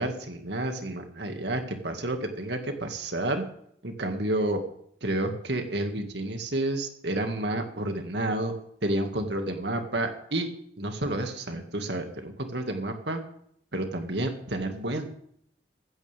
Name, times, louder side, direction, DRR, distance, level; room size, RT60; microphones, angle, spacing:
voice 1, 0.0-3.4 3.8-4.6 5.0-8.5 8.8-10.5 10.8-13.2 13.7-15.1, right 1 dB, 75° right, 5 dB, 2.1 m, -30 dB
16.0 x 13.5 x 3.6 m, 0.70 s
head